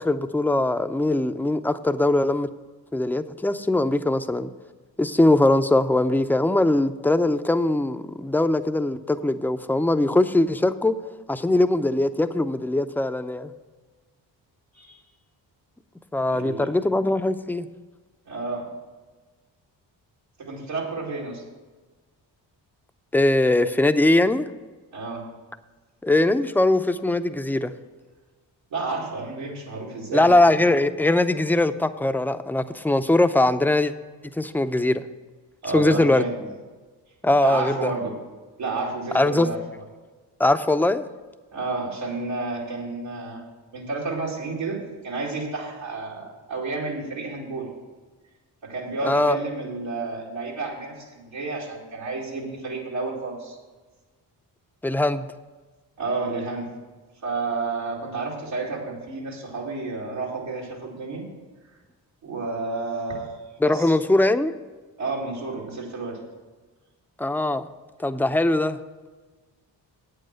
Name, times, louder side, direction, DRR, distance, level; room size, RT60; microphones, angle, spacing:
voice 1, 0.0-2.5 2.9-4.5 5.0-10.9 11.3-13.5 16.1-17.7 23.1-24.5 26.0-27.7 30.1-33.9 34.4-35.0 35.7-36.2 37.2-37.9 39.1-39.5 40.4-41.0 49.0-49.4 54.8-55.3 63.6-64.5 67.2-67.7 68.0-68.8, left 2 dB, 5° left, 10 dB, 0.5 m, -21 dB
voice 2, 16.3-16.7 18.3-18.7 20.4-21.4 24.9-25.2 28.7-30.5 35.6-36.3 37.4-38.1 38.6-39.6 41.5-43.4 43.7-44.8 45.0-47.7 48.6-53.6 56.0-56.7 57.2-61.2 62.2-63.4 63.6-63.9 65.0-66.2, right 3 dB, 80° right, -4 dB, 2.3 m, -30 dB
8.7 x 7.9 x 6.4 m, 1.3 s
supercardioid pair, 50°, 46 cm